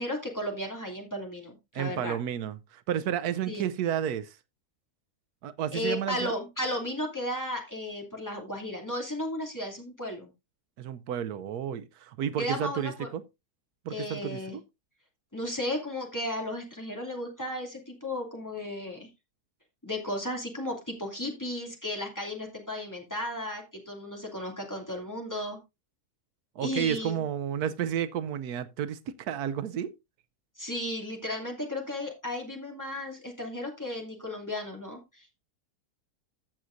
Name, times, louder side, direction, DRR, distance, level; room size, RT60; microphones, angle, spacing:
voice 1, 0.0-2.1 3.5-3.7 5.7-10.3 12.4-13.1 13.9-14.6 15.3-19.1 19.8-25.6 26.6-27.2 30.6-35.4, left 1 dB, 10° left, 2.6 m, -34 dB
voice 2, 1.7-4.4 5.4-6.4 10.8-13.2 13.8-14.6 26.6-29.9, right 9 dB, 80° right, 1.2 m, -31 dB
15.0 x 6.4 x 2.6 m
omnidirectional pair, 1.6 m